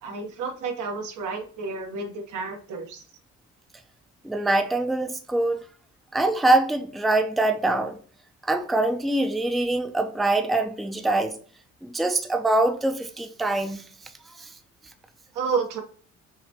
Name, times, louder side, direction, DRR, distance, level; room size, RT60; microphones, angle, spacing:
voice 1, 0.0-3.0 15.3-15.8, right 5 dB, 80° right, 1.1 m, -30 dB
voice 2, 4.2-5.6 6.1-8.0 8.5-11.4 11.8-13.8 14.4-14.5, right 2 dB, ahead, 0.4 m, -24 dB
5.8 x 2.2 x 2.8 m
cardioid pair, 90°, 30 cm